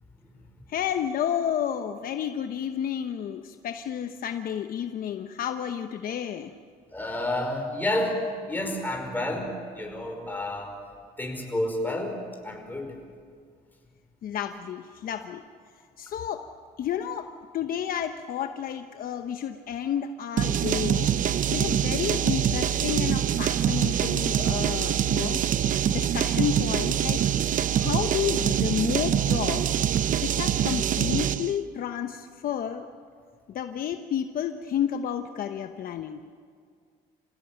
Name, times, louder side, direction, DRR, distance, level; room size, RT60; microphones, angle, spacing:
voice 1, 0.7-6.5 14.2-15.4 16.0-16.5 16.8-21.1 21.5-27.2 27.7-29.8 30.2-32.9 33.5-36.2, left 9 dB, 60° left, 7 dB, 1.0 m, -31 dB
voice 2, 6.9-8.2 8.5-10.7 11.2-12.2 12.4-12.9, left 1 dB, 10° left, 2 dB, 5.2 m, -30 dB
sound 1, 20.4-31.5, right 10 dB, 50° right, 0.8 m, -25 dB
28.0 x 17.0 x 9.0 m, 2.1 s
cardioid pair, 110°, 17 cm